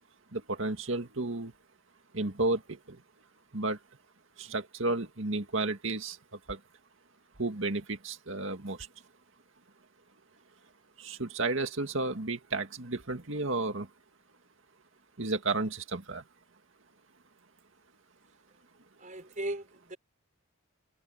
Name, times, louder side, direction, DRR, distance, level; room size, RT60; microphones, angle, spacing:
voice 1, 0.3-1.5 2.1-3.0 3.5-3.8 4.4-6.2 6.5-6.6 7.4-8.8 11.0-13.9 15.2-16.2, right 2 dB, 70° right, 2.1 m, -32 dB
voice 2, 19.0-20.0, right 1 dB, 40° right, 4.7 m, -37 dB
head